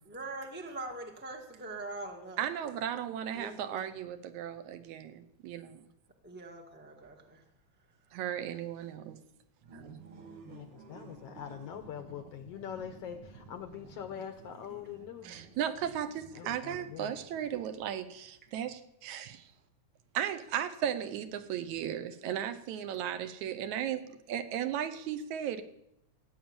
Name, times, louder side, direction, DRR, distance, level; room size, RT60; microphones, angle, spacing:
voice 1, 0.1-2.7 3.3-3.9 6.2-7.4, right 2 dB, 15° right, 2 dB, 0.3 m, -43 dB
voice 2, 2.4-5.9 8.1-9.2 9.7-10.0 15.2-19.5 20.1-25.6, right 10 dB, 75° right, 11 dB, 2.1 m, -36 dB
sound 1, 9.6-18.2, right 3 dB, 50° right, 1.3 m, -53 dB
voice 3, 10.5-15.4 16.3-17.1, left 9 dB, 70° left, 8 dB, 1.6 m, -43 dB
16.0 x 7.2 x 8.8 m, 0.80 s
omnidirectional pair, 3.5 m